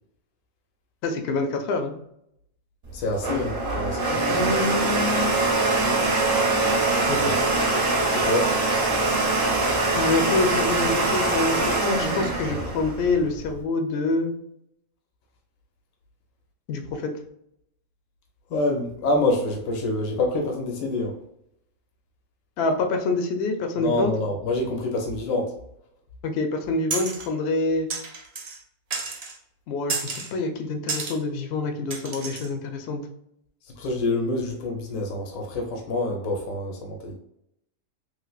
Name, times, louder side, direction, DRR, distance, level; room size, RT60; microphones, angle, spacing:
voice 1, 1.0-1.9 7.1-7.4 10.0-14.3 16.7-17.1 22.6-24.1 26.2-27.9 29.7-33.0, left 3 dB, 65° left, 5 dB, 0.7 m, -26 dB
voice 2, 2.9-4.6 7.1-7.4 8.1-8.5 12.5-12.6 18.5-21.2 23.8-25.5 33.8-37.2, left 2 dB, 80° left, 1 dB, 1.1 m, -27 dB
Domestic sounds home sounds, 2.9-13.6, right 2 dB, 50° right, 0.8 m, -23 dB
sound 1, 26.9-27.3 27.9-28.6 28.9-29.4 29.9-30.3 30.9-31.2 31.9-32.5, right 4 dB, 70° right, 0.3 m, -31 dB
3.2 x 3.1 x 2.3 m, 0.76 s
omnidirectional pair, 1.4 m